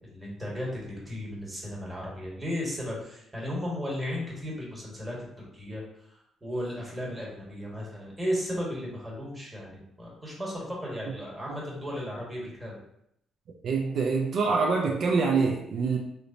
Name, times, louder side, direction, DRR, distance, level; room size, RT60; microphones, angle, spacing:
voice 1, 0.1-5.8 6.4-12.8, equal, 15° right, -4 dB, 1.1 m, -35 dB
voice 2, 13.6-16.0, right 4 dB, 65° right, 0 dB, 0.3 m, -25 dB
3.0 x 2.0 x 2.5 m, 0.75 s
cardioid pair, 90°, 0 cm